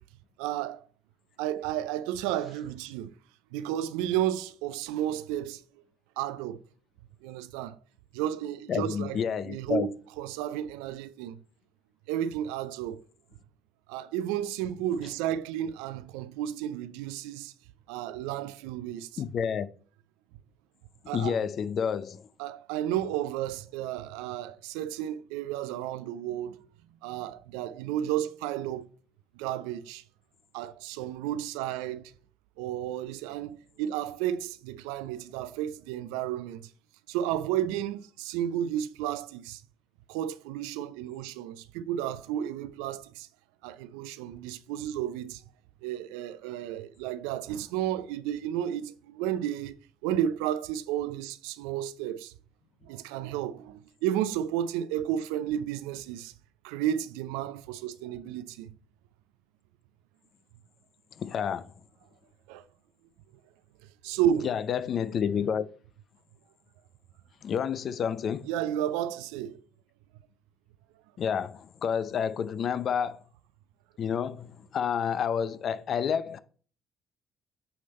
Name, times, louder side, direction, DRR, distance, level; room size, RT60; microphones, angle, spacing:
voice 1, 0.4-0.9 1.4-3.1 3.5-5.6 6.2-6.6 7.2-7.8 8.1-11.4 12.1-13.0 13.9-17.5 17.9-19.2 21.1-21.4 22.4-26.6 27.0-28.9 29.4-30.0 30.5-32.1 32.6-36.7 37.1-39.6 40.1-43.3 43.6-45.4 45.8-49.8 50.0-52.3 52.9-56.3 56.6-58.8 62.5-62.6 64.0-64.5 68.5-69.6, right 11 dB, 80° right, 0.4 m, -32 dB
voice 2, 8.7-9.9 19.2-19.7 21.1-22.2 61.2-61.7 64.4-65.7 67.4-68.5 71.2-73.2 74.0-76.4, left 7 dB, 55° left, 0.5 m, -29 dB
8.6 x 3.4 x 4.2 m
hypercardioid pair, 60°, 0 cm